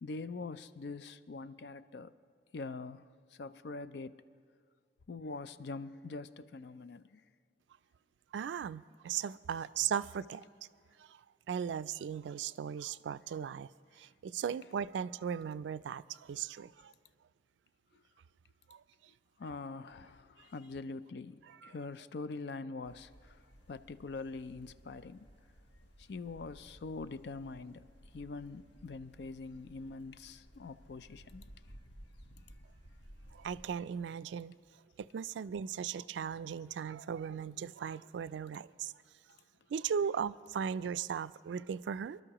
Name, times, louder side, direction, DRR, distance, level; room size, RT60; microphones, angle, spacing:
voice 1, 0.0-2.1 2.5-3.0 3.3-4.2 5.1-7.2 19.4-23.4 23.7-25.3 26.0-27.9 28.1-31.4, left 3 dB, 65° left, 13 dB, 0.4 m, -44 dB
voice 2, 8.3-10.4 11.0-11.2 11.5-13.7 14.0-16.9 18.7-18.8 21.5-21.7 33.3-34.6 35.0-38.9 39.7-42.2, right 7 dB, 85° right, 16 dB, 0.3 m, -37 dB
sound 1, 22.8-33.7, equal, 90° left, 1.4 m, -57 dB
25.0 x 12.0 x 3.0 m, 2.2 s
head